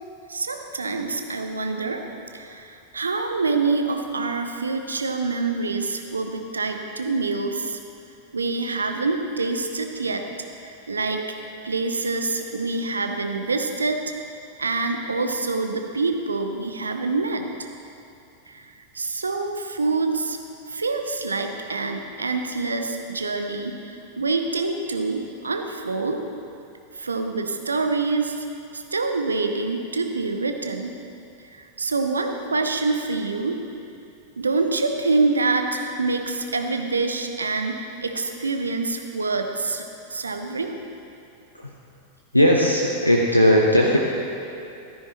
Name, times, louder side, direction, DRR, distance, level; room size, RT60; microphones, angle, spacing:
voice 1, 0.3-2.0 2.3-7.8 8.3-10.2 10.6-11.3 11.6-14.0 14.6-17.7 18.5-20.4 20.7-26.2 26.9-28.4 28.7-31.0 31.5-33.6 34.4-40.7, right 3 dB, 75° right, 5 dB, 0.7 m, -26 dB
voice 2, 42.3-44.0, equal, 85° left, -1 dB, 0.7 m, -17 dB
13.5 x 10.0 x 3.0 m, 2.7 s
figure-of-eight pair, 90°, 0 cm